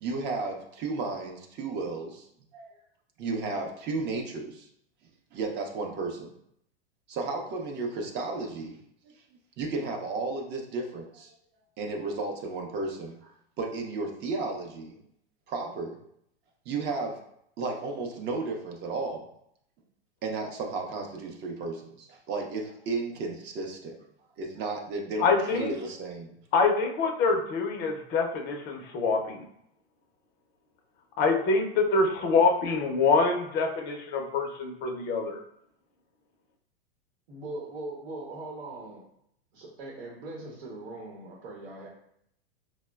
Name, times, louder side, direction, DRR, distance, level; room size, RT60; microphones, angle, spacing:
voice 1, 0.0-2.3 2.5-2.7 3.2-4.7 5.3-6.3 7.1-8.8 9.0-9.1 9.6-11.3 11.8-15.0 15.5-16.0 16.7-17.2 17.6-19.3 20.2-23.9 24.4-26.4, right 3 dB, 35° right, 1 dB, 0.6 m, -33 dB
voice 2, 25.2-25.7 26.5-29.4 31.2-35.4, left 4 dB, 30° left, 2 dB, 0.5 m, -25 dB
voice 3, 37.3-39.0 39.5-41.9, right 2 dB, 75° right, -2 dB, 0.9 m, -40 dB
4.1 x 2.1 x 2.2 m, 0.72 s
hypercardioid pair, 120°, 32 cm